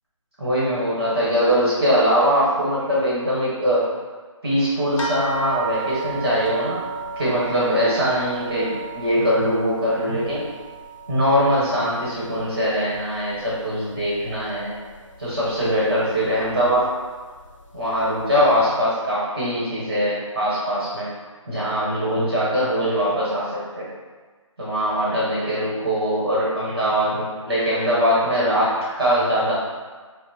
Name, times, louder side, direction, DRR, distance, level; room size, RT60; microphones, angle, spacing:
voice 1, 0.4-3.9 4.4-6.8 7.2-10.4 11.1-14.7 15.2-16.9 17.7-21.1 21.5-23.9 24.6-29.5, equal, 35° right, -8 dB, 1.0 m, -22 dB
sound 1, 5.0-13.8 14.1-15.0 15.8-15.9 16.3-16.4, right 4 dB, 70° left, 0.6 m, -34 dB
5.2 x 2.1 x 2.8 m, 1.4 s
figure-of-eight pair, 170°, 17 cm